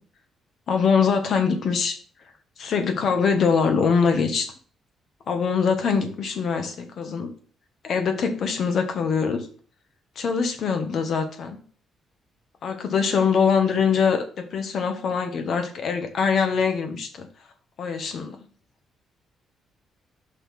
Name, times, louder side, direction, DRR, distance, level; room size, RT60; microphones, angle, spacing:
voice 1, 0.7-2.0 2.6-4.5 5.3-7.3 7.8-9.5 10.2-11.6 12.6-17.3 17.8-18.4, left 6 dB, 60° left, 6 dB, 1.2 m, -23 dB
5.4 x 3.8 x 5.8 m, 0.43 s
cardioid pair, 90°, 0 cm